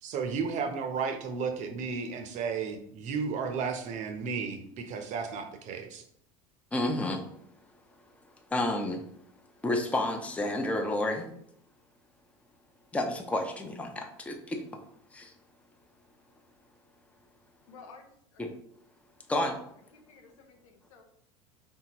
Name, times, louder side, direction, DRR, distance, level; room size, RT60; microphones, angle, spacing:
voice 1, 0.0-6.0, right 5 dB, 45° right, 6 dB, 0.8 m, -33 dB
voice 2, 6.7-7.2 8.5-9.0 9.6-11.3 12.9-14.6 15.1-15.3 18.4-18.5 19.3-19.6, left 1 dB, 10° left, 3 dB, 0.6 m, -30 dB
voice 3, 17.7-18.1 18.3-18.4 19.9-21.0, left 4 dB, 85° left, 3 dB, 0.7 m, -53 dB
4.5 x 3.4 x 2.9 m, 0.69 s
supercardioid pair, 100°, 16 cm